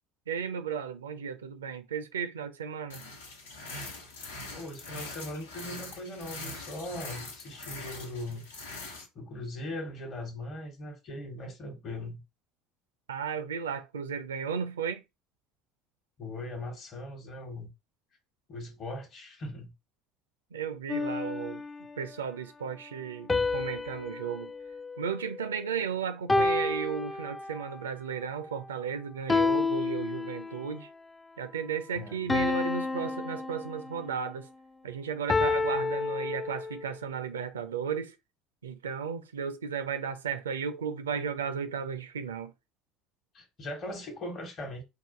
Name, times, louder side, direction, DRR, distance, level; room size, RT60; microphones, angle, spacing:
voice 1, 0.3-3.0 13.1-15.0 20.5-21.6 22.0-24.5 25.0-30.9 31.4-34.5 34.8-38.1 38.6-42.5, right 7 dB, 75° right, 0.5 m, -34 dB
sound 1, 2.9-9.1, left 2 dB, 70° left, 0.9 m, -42 dB
voice 2, 4.5-8.4 9.1-12.2 16.2-17.7 18.5-19.7 32.0-32.4 43.3-44.8, left 1 dB, 40° left, 1.1 m, -39 dB
sound 2, 20.9-22.1 23.3-25.7 26.3-27.8 29.3-30.8 32.3-34.2 35.3-36.9, left 3 dB, 15° left, 0.4 m, -30 dB
4.7 x 2.5 x 3.7 m
figure-of-eight pair, 60°, 0 cm